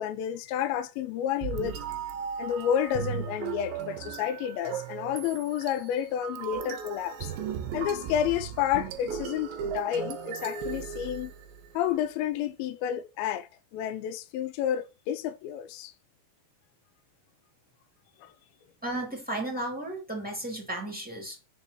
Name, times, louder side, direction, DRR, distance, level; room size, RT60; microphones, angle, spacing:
voice 1, 0.0-1.8 2.4-7.3 7.7-11.3 11.7-15.9 18.2-18.3, left 10 dB, 85° left, 2.1 m, -30 dB
sound 1, 1.4-11.7, right 8 dB, 80° right, 2.1 m, -36 dB
voice 2, 18.8-21.5, right 1 dB, 5° right, 1.2 m, -34 dB
5.4 x 5.1 x 6.6 m
omnidirectional pair, 5.1 m